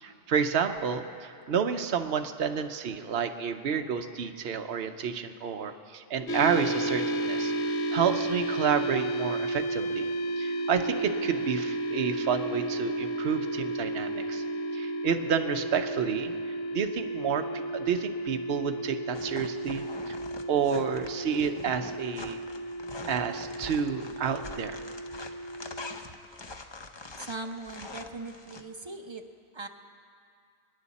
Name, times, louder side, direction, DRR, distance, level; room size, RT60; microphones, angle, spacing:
voice 1, 0.0-7.5 7.9-10.1 10.4-14.4 14.7-16.3 16.7-20.2 20.5-22.4 23.1-24.8, right 7 dB, 65° right, 6 dB, 0.9 m, -30 dB
sound 1, 6.3-26.0, right 1 dB, 70° left, 1.2 m, -33 dB
sound 2, 19.1-28.6, left 3 dB, 30° left, 0.6 m, -44 dB
voice 2, 27.2-29.2 29.5-29.7, right 3 dB, 30° right, 4 dB, 0.7 m, -39 dB
29.0 x 9.8 x 4.1 m, 2.3 s
omnidirectional pair, 1.2 m